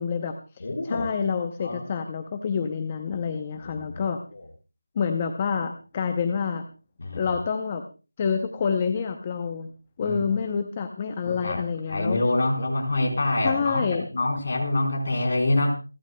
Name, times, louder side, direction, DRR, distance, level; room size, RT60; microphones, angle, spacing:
voice 1, 0.0-4.2 5.0-6.7 7.1-7.8 8.2-9.7 10.0-12.2 13.4-14.1, left 6 dB, 15° left, 7 dB, 0.6 m, -28 dB
voice 2, 0.6-1.1 1.6-1.8 3.6-4.0 4.3-4.4 7.0-7.2 10.0-10.3 11.3-11.6 11.9-15.7, left 2 dB, 30° left, 1 dB, 4.1 m, -26 dB
28.5 x 11.5 x 2.2 m, 0.34 s
figure-of-eight pair, 180°, 0 cm